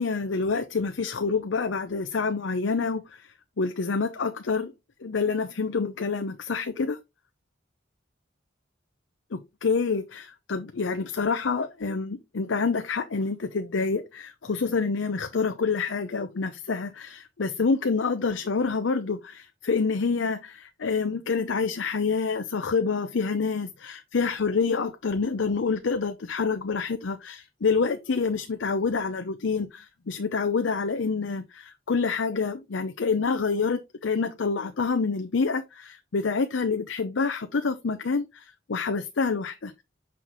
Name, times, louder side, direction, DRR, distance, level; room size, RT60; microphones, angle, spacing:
voice 1, 0.0-3.3 3.6-4.7 5.0-7.0 9.3-39.8, left 4 dB, 75° left, 0.6 m, -27 dB
6.2 x 5.7 x 3.0 m
head